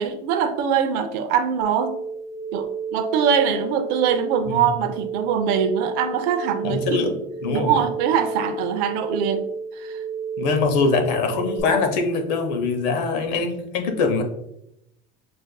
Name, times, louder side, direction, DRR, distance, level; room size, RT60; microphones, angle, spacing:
voice 1, 0.0-2.0 2.5-7.0 7.5-9.4 9.8-10.0, right 7 dB, 45° right, 8 dB, 0.4 m, -23 dB
sound 1, 1.6-11.6, right 4 dB, 60° left, 1.3 m, -31 dB
voice 2, 6.6-7.2 7.4-7.8 10.4-14.2, left 4 dB, 85° left, 5 dB, 0.8 m, -23 dB
6.3 x 2.5 x 2.2 m, 0.82 s
cardioid pair, 180°, 21 cm